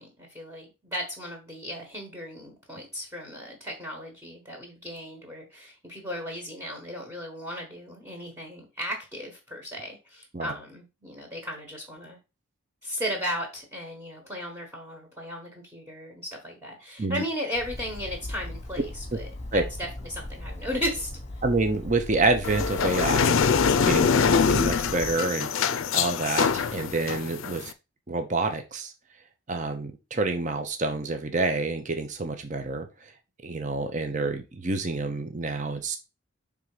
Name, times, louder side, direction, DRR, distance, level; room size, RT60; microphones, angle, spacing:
voice 1, 0.0-12.2 12.8-21.2, equal, 15° right, 0 dB, 1.4 m, -36 dB
Bird, 17.5-25.2, left 1 dB, 30° left, 1.1 m, -37 dB
voice 2, 21.4-23.4 23.8-24.1 24.5-27.7 28.1-28.9 29.5-33.1 33.4-36.0, right 3 dB, 35° right, 6 dB, 0.8 m, -28 dB
sound 1, 22.4-27.7, left 6 dB, 70° left, 0.4 m, -24 dB
5.5 x 3.5 x 4.9 m, 0.28 s
head